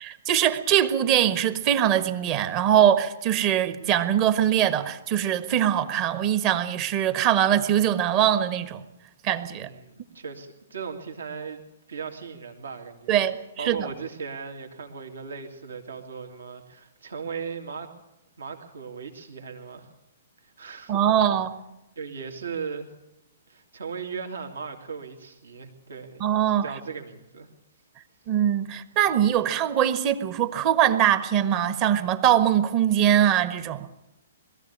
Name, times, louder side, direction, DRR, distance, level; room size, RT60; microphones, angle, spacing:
voice 1, 0.0-8.8 9.2-9.7 13.1-13.9 20.9-21.6 26.2-26.6 28.3-33.9, right 10 dB, 30° right, 11 dB, 1.4 m, -22 dB
voice 2, 9.5-11.6 11.9-13.2 13.6-17.9 18.4-19.9 20.4-21.0 22.0-22.9 23.5-26.2 26.5-27.5, right 5 dB, 65° right, 4 dB, 2.5 m, -37 dB
21.5 x 14.5 x 8.7 m, 0.90 s
figure-of-eight pair, 120°, 0 cm